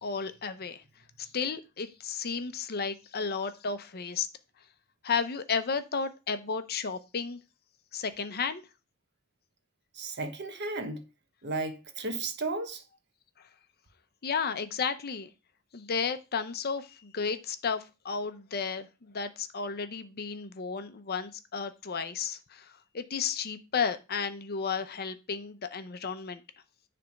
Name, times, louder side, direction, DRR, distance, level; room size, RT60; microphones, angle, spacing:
voice 1, 0.0-0.8 1.2-4.3 5.0-7.4 7.9-8.6 14.2-15.3 15.7-26.4, left 5 dB, 45° left, 0.7 m, -33 dB
voice 2, 9.9-11.0 11.4-12.8, right 3 dB, 55° right, 1.0 m, -34 dB
9.9 x 3.4 x 5.1 m
head